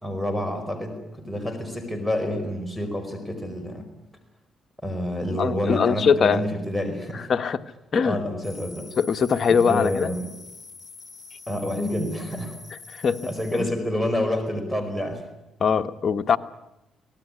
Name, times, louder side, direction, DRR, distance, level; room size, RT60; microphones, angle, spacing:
voice 1, 0.0-3.9 4.8-7.3 8.0-8.9 9.7-10.3 11.5-12.6 13.2-15.2, left 1 dB, ahead, 4 dB, 4.9 m, -28 dB
voice 2, 5.4-6.4 7.1-7.6 7.9-8.2 9.0-10.1 12.9-13.7 15.6-16.4, left 6 dB, 45° left, 8 dB, 1.3 m, -22 dB
sound 1, 8.4-13.6, left 4 dB, 30° left, 3.8 m, -45 dB
25.5 x 18.5 x 9.8 m, 0.92 s
cardioid pair, 90°, 0 cm